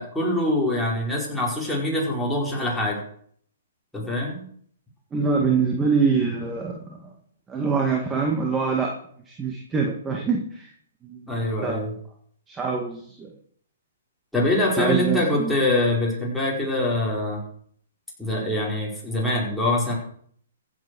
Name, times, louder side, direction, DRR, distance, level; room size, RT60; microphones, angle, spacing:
voice 1, 0.0-3.0 3.9-4.4 11.3-11.9 14.3-17.4 18.2-19.9, left 1 dB, ahead, -5 dB, 4.7 m, -24 dB
voice 2, 5.1-6.8 7.5-8.9 9.3-10.7 11.0-11.3 11.6-11.8 12.5-13.3 14.8-15.5, right 5 dB, 15° right, 1 dB, 1.9 m, -24 dB
15.5 x 8.2 x 6.2 m, 0.62 s
hypercardioid pair, 150°, 0 cm